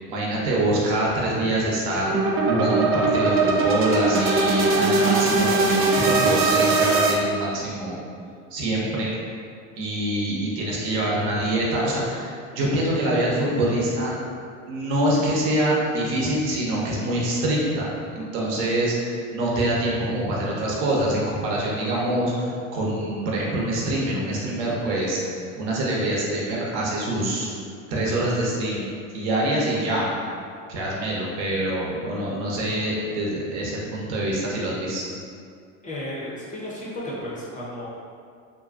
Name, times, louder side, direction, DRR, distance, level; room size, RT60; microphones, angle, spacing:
voice 1, 0.1-2.2 2.5-8.0 8.5-9.1 9.8-14.1 14.6-27.5 27.9-28.9 29.1-30.1 30.7-35.0, right 1 dB, 65° right, -4 dB, 0.8 m, -25 dB
sound 1, 2.0-7.1, right 3 dB, 35° right, 0.4 m, -20 dB
voice 2, 35.8-37.9, left 1 dB, 20° left, -7 dB, 0.7 m, -33 dB
2.6 x 2.3 x 2.4 m, 2.3 s
hypercardioid pair, 85°, 39 cm